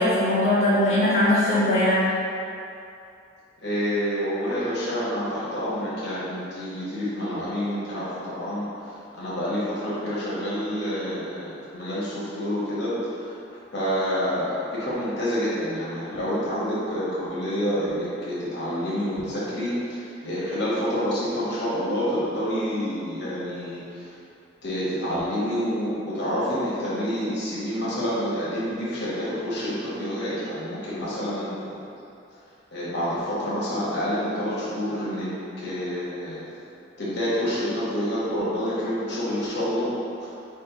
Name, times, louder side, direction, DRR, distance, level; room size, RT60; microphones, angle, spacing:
voice 1, 0.0-2.1, left 1 dB, 30° left, -11 dB, 1.1 m, -20 dB
voice 2, 3.6-24.1 24.6-31.8 32.7-35.3 35.6-36.5 37.0-39.9 40.2-40.3, equal, 50° left, -9 dB, 1.2 m, -28 dB
5.2 x 2.4 x 3.9 m, 2.7 s
head